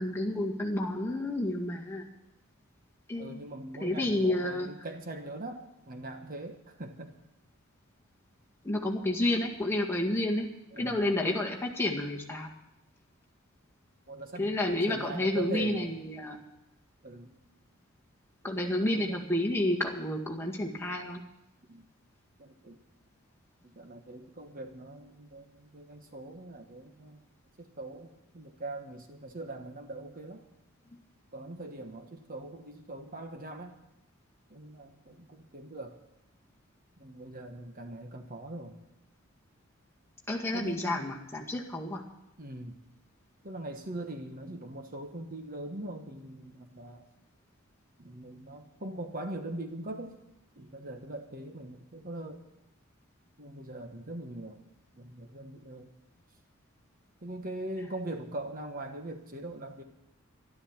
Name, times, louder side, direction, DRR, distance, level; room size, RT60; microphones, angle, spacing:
voice 1, 0.0-2.0 3.1-3.4 3.8-4.7 8.6-10.5 10.8-12.5 14.4-16.4 18.4-21.2 40.3-42.0, left 1 dB, 10° left, -2 dB, 1.9 m, -30 dB
voice 2, 3.2-7.2 10.7-11.0 14.1-14.6 14.9-16.0 17.0-17.4 18.4-19.2 21.7-21.9 22.4-22.8 23.6-27.3 27.6-30.4 31.3-33.8 34.5-36.0 37.0-38.8 40.5-41.2 42.4-42.8 43.4-47.0 48.0-50.2 50.6-52.4 53.4-54.6 54.9-55.9 57.2-59.8, right 1 dB, 40° right, 5 dB, 1.3 m, -42 dB
12.5 x 12.5 x 7.3 m, 0.86 s
head